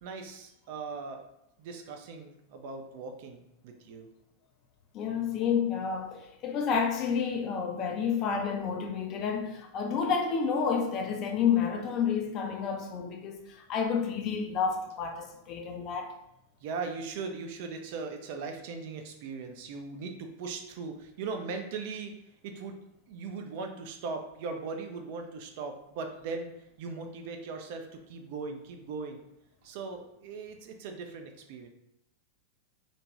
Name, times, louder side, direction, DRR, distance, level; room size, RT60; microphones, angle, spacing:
voice 1, 0.0-1.2 1.6-4.1 16.6-22.1 22.4-26.5 26.8-29.2 29.6-31.7, right 4 dB, 50° right, 0.4 m, -39 dB
voice 2, 4.9-16.1, left 6 dB, 35° left, 0.4 m, -30 dB
2.6 x 2.1 x 3.1 m
figure-of-eight pair, 90°, 0 cm